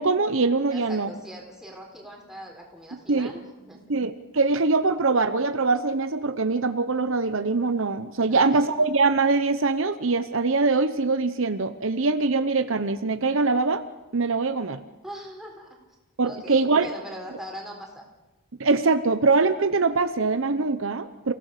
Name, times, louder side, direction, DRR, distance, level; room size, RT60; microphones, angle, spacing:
voice 1, 0.0-1.1 2.9-3.3 3.9-13.8 14.1-14.8 16.2-16.9 18.6-21.3, right 3 dB, 65° right, 10 dB, 0.9 m, -23 dB
voice 2, 0.7-3.8 8.2-8.7 15.0-15.8 16.2-18.0, equal, ahead, 0 dB, 4.2 m, -41 dB
29.5 x 17.0 x 6.7 m, 1.1 s
head